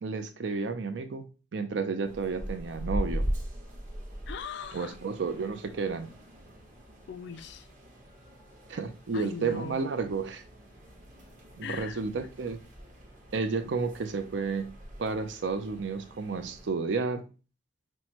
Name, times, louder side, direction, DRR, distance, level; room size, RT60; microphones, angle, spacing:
voice 1, 0.0-3.3 4.7-6.1 8.7-10.4 11.6-12.6 13.3-14.7 15.0-17.3, right 4 dB, 70° right, 0.5 m, -31 dB
sound 1, 2.0-16.7, equal, 45° right, 1.2 m, -40 dB
voice 2, 4.3-4.9 7.1-7.7 9.1-9.8 11.6-12.0, left 6 dB, 65° left, 0.3 m, -39 dB
6.0 x 2.1 x 2.8 m
head